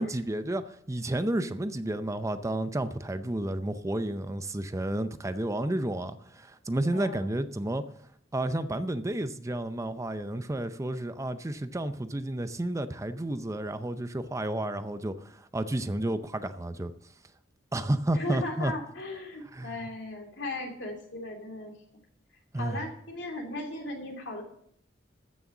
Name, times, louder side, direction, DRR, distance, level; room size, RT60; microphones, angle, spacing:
voice 1, 0.0-7.8 8.3-16.9 17.7-18.7 19.5-19.8 22.5-22.8, right 1 dB, 15° right, 10 dB, 0.5 m, -31 dB
voice 2, 6.9-7.3 18.1-21.7 22.5-24.4, left 2 dB, 70° left, 1 dB, 2.9 m, -37 dB
14.5 x 6.3 x 7.0 m, 0.69 s
head